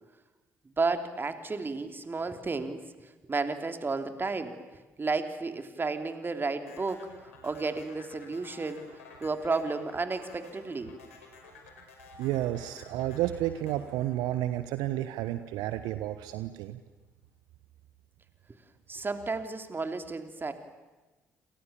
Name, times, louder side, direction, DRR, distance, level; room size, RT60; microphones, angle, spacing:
voice 1, 0.8-4.6 5.0-8.8 9.2-10.9 18.9-20.5, right 3 dB, 30° right, 7 dB, 3.3 m, -32 dB
sound 1, 6.7-15.0, left 4 dB, 80° left, 5.1 m, -52 dB
voice 2, 12.2-16.8, right 14 dB, 65° right, 11 dB, 1.1 m, -31 dB
29.0 x 28.0 x 7.2 m, 1.2 s
figure-of-eight pair, 45°, 7 cm